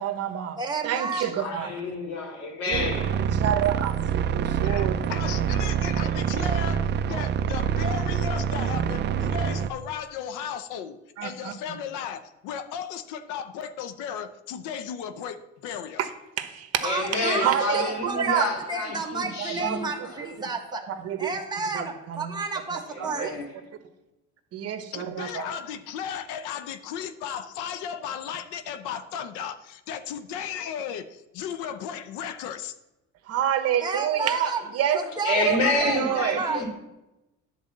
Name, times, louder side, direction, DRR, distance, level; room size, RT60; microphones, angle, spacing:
voice 1, 0.0-0.6 0.8-1.7 2.7-2.8 3.1-5.4 7.1-7.4 11.2-11.5 16.0-16.1 16.4-16.8 17.4-18.5 19.4-19.8 21.0-21.3 21.7-22.4 22.7-23.3 24.5-25.5 33.3-35.1 35.4-36.4, right 10 dB, 55° right, 1.1 m, -28 dB
voice 2, 0.6-1.3 16.8-20.8 21.2-23.4 33.8-34.6 34.9-36.7, right 4 dB, 15° right, 1.4 m, -31 dB
voice 3, 1.2-3.2 16.8-20.2 22.9-23.5 35.2-36.7, left 2 dB, 60° left, 2.9 m, -29 dB
sound 1, 2.7-9.7, right 8 dB, 35° right, 0.5 m, -26 dB
voice 4, 4.6-16.0 24.9-32.7, left 8 dB, 90° left, 0.8 m, -35 dB
10.0 x 4.2 x 7.3 m
cardioid pair, 125°, 30 cm